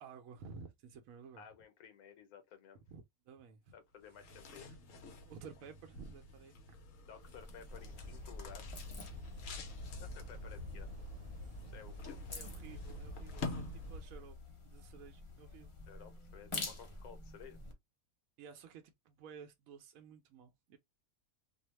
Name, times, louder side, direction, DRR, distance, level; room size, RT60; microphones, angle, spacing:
voice 1, 0.0-1.4 2.9-3.7 4.6-4.8 5.3-6.5 12.3-14.4 14.6-15.7 18.4-20.8, right 6 dB, 70° right, 0.9 m, -53 dB
voice 2, 1.4-2.8 3.7-4.7 7.1-8.7 10.0-10.9 11.6-12.2 15.9-17.6, left 8 dB, 90° left, 1.1 m, -55 dB
sound 1, 4.0-14.4, left 2 dB, 65° left, 1.0 m, -49 dB
sound 2, 7.2-17.7, left 2 dB, 50° left, 0.3 m, -49 dB
sound 3, 7.7-14.0, left 2 dB, 45° right, 0.9 m, -48 dB
2.7 x 2.0 x 3.0 m
omnidirectional pair, 1.5 m